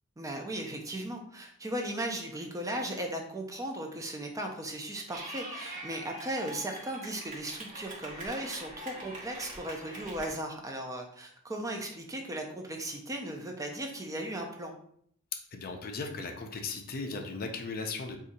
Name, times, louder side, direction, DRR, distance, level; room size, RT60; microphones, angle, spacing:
voice 1, 0.2-14.7, right 1 dB, 15° right, 2 dB, 0.4 m, -37 dB
Clapping / Cheering, 5.1-10.3, right 1 dB, 40° right, 0.9 m, -43 dB
voice 2, 15.5-18.2, left 4 dB, 45° left, 4 dB, 0.4 m, -37 dB
2.7 x 2.4 x 4.0 m, 0.65 s
head